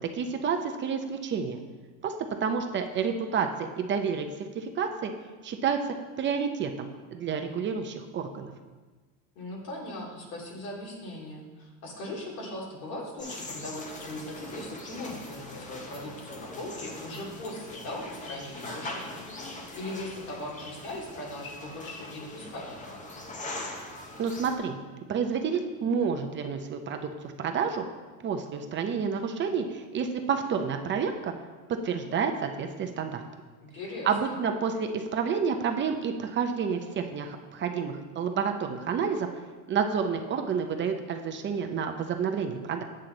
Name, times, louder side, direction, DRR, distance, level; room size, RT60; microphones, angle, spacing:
voice 1, 0.1-1.6 2.0-2.1 2.4-4.3 4.5-5.1 5.4-8.5 24.2-24.8 25.1-27.8 28.2-31.3 31.7-33.2 34.1-39.3 39.7-42.8, right 6 dB, 30° right, 5 dB, 0.6 m, -29 dB
voice 2, 9.4-23.2 33.6-34.4, left 1 dB, 80° left, -2 dB, 2.7 m, -39 dB
sound 1, 13.2-24.6, left 2 dB, 20° left, 0.9 m, -41 dB
7.6 x 7.6 x 3.8 m, 1.3 s
supercardioid pair, 130°, 40 cm